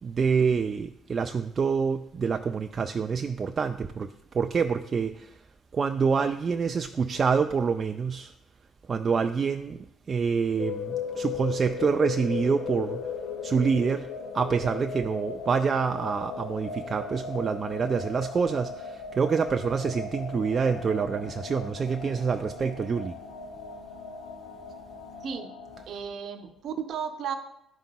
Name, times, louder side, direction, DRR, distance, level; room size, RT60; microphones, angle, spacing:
voice 1, 0.0-5.4 5.7-8.3 8.9-13.1 13.4-14.1 14.3-23.2, right 5 dB, 40° right, 7 dB, 0.3 m, -27 dB
sound 1, 10.6-25.8, left 6 dB, 70° left, 0.6 m, -37 dB
voice 2, 25.2-25.6 25.9-27.3, right 7 dB, 60° right, 7 dB, 0.7 m, -34 dB
11.5 x 5.2 x 2.2 m, 0.81 s
hypercardioid pair, 55°, 0 cm